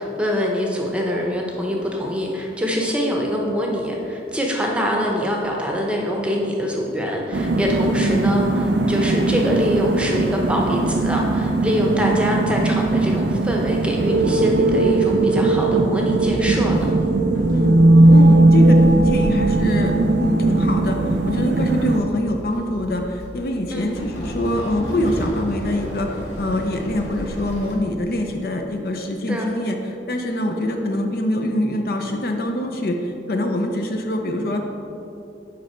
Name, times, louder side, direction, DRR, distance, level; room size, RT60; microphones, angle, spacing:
voice 1, 0.0-16.9 23.7-23.8 29.3-29.5, equal, 5° right, -1 dB, 0.8 m, -24 dB
sound 1, 7.3-22.0, right 2 dB, 70° right, 0.4 m, -18 dB
Walk footsteps / Chatter / Hiss, 16.1-27.7, equal, 75° left, 1.8 m, -33 dB
voice 2, 18.1-19.9 20.2-34.7, left 1 dB, 55° left, 3 dB, 0.6 m, -24 dB
7.7 x 5.3 x 4.4 m, 2.8 s
head